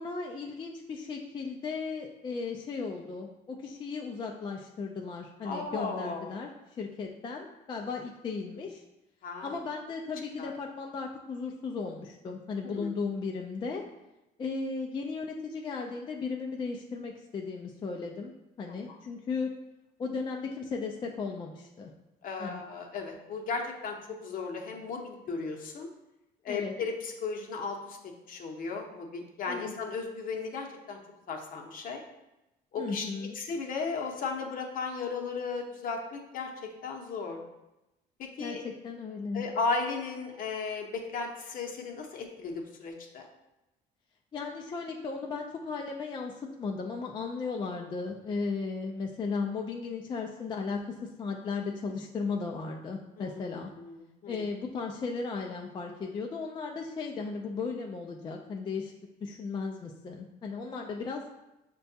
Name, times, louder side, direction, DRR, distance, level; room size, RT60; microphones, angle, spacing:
voice 1, 0.0-8.8 9.4-13.8 14.4-18.3 18.6-19.5 20.0-21.9 22.4-22.6 26.5-26.7 29.5-29.8 32.8-33.4 38.4-39.4 44.3-53.7 54.3-58.9 59.2-61.2, left 4 dB, 30° left, 1 dB, 0.3 m, -36 dB
voice 2, 5.4-6.4 9.2-9.6 10.4-10.5 12.6-12.9 22.2-25.9 26.4-28.0 28.3-31.0 31.3-32.0 32.7-37.4 38.2-38.6 39.3-43.3 53.2-54.4, left 4 dB, 55° left, 2 dB, 0.7 m, -35 dB
6.6 x 2.2 x 2.7 m, 0.97 s
cardioid pair, 110°, 17 cm